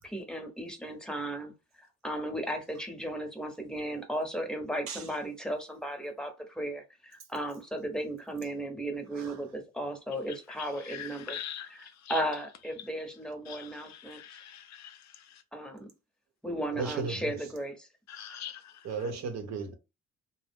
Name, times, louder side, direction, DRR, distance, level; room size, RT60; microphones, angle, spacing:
voice 1, 0.0-14.2 15.5-15.9 16.4-17.9, right 1 dB, ahead, 0.8 m, -36 dB
voice 2, 10.9-11.7 13.5-13.7 14.1-15.0 18.1-18.6, left 10 dB, 65° left, 0.5 m, -42 dB
voice 3, 16.8-17.2 18.8-19.7, right 4 dB, 60° right, 0.7 m, -34 dB
2.3 x 2.0 x 3.4 m
cardioid pair, 90°, 30 cm